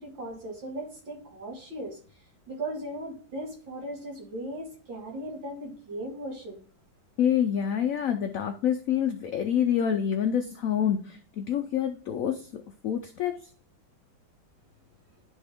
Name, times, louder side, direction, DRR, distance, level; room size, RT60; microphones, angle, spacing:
voice 1, 0.0-2.0 2.5-6.6, right 1 dB, 75° right, 0 dB, 2.5 m, -37 dB
voice 2, 7.2-12.5 12.8-13.5, left 9 dB, 85° left, 6 dB, 0.7 m, -27 dB
10.5 x 3.6 x 3.4 m, 0.43 s
omnidirectional pair, 2.0 m